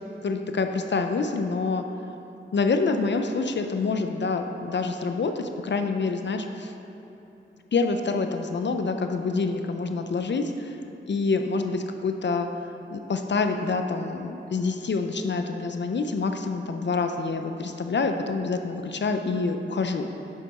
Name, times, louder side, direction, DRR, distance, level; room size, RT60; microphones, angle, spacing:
voice 1, 0.2-1.8 2.5-6.7 7.7-10.8 11.1-12.5 12.9-20.1, left 4 dB, 60° left, 6 dB, 0.5 m, -27 dB
8.3 x 6.7 x 4.2 m, 3.0 s
wide cardioid pair, 90°, 20 cm